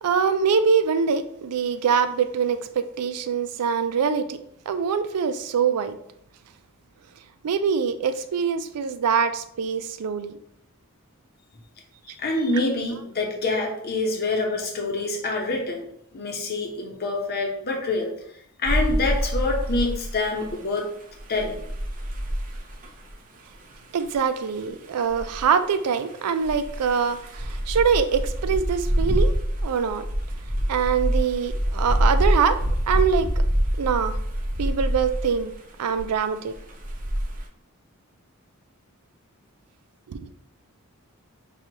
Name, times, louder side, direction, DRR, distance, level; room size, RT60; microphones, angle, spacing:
voice 1, 0.0-4.4 4.7-6.0 7.4-10.4 23.9-29.3 29.6-30.0 30.7-32.6 32.9-33.3 33.8-34.2 34.6-35.5 35.8-36.5 40.1-40.2, right 6 dB, 90° right, 10 dB, 0.4 m, -24 dB
voice 2, 12.1-15.9 16.1-18.1 18.6-20.9 21.3-21.6, left 2 dB, 45° left, 1 dB, 0.8 m, -26 dB
sound 1, 18.6-20.5 20.8-23.1 23.6-23.7 24.0-24.2 24.4-24.6 25.1-35.5 35.9-36.2 36.5-37.4, equal, 35° right, 0.7 m, -26 dB
6.0 x 2.4 x 2.8 m, 0.70 s
head